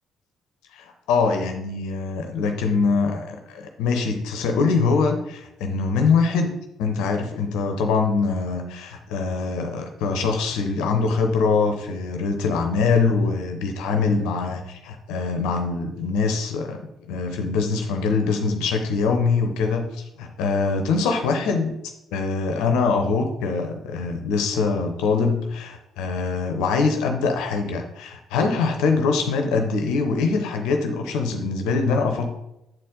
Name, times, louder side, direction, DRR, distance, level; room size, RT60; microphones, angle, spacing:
voice 1, 0.7-6.5 6.8-16.8 17.1-21.7 22.1-32.3, left 4 dB, 75° left, 4 dB, 0.7 m, -23 dB
7.8 x 4.2 x 3.8 m, 0.85 s
hypercardioid pair, 45°, 0 cm